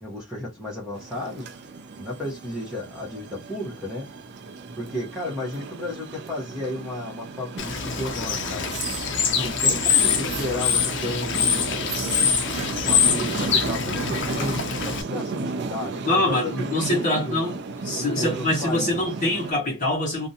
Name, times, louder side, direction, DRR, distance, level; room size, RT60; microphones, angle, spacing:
voice 1, 0.0-1.6 2.0-4.1 4.8-8.7 9.3-12.0 12.8-17.6 18.2-19.1, left 1 dB, 5° right, 0.9 m, -33 dB
sound 1, 0.9-19.5, right 4 dB, 60° right, 0.4 m, -34 dB
Bird / Water, 7.6-15.0, left 7 dB, 65° left, 0.6 m, -24 dB
voice 2, 16.0-17.6 17.8-20.3, left 1 dB, 40° left, 1.0 m, -24 dB
2.5 x 2.2 x 2.7 m
head